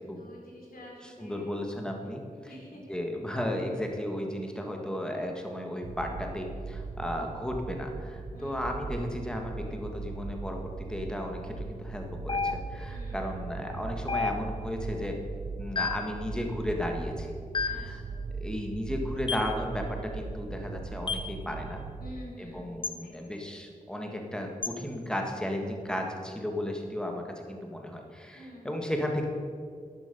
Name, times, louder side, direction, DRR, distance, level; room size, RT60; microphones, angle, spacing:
voice 1, 0.2-1.5 2.5-2.8 8.3-8.7 12.9-13.4 17.7-18.3 22.0-22.7 23.0-23.4 28.3-28.9, left 1 dB, 85° left, -3 dB, 3.4 m, -48 dB
voice 2, 1.0-2.5 2.9-15.2 15.6-17.3 17.6-18.0 18.3-21.8 22.4-29.2, left 1 dB, 5° left, 2 dB, 1.6 m, -34 dB
sound 1, 5.8-22.2, right 4 dB, 75° right, 0.7 m, -39 dB
sound 2, 12.3-13.0 14.1-14.8 15.8-16.2 17.5-18.0 19.3-19.6 21.1-21.4 22.8-23.0 24.6-24.8, left 4 dB, 35° left, 0.5 m, -32 dB
11.0 x 10.5 x 5.4 m, 2.2 s
wide cardioid pair, 120°, 15 cm